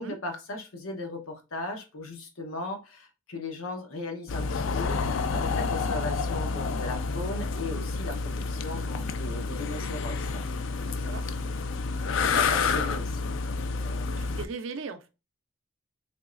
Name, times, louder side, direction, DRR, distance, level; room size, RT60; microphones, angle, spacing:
voice 1, 0.0-10.4 10.8-11.6 12.1-14.1, left 2 dB, 90° left, 0.9 m, -38 dB
sound 1, 4.3-14.5, left 4 dB, 65° left, 0.3 m, -29 dB
voice 2, 10.8-11.2 14.2-15.1, right 4 dB, 70° right, 0.5 m, -38 dB
3.5 x 3.0 x 2.4 m
head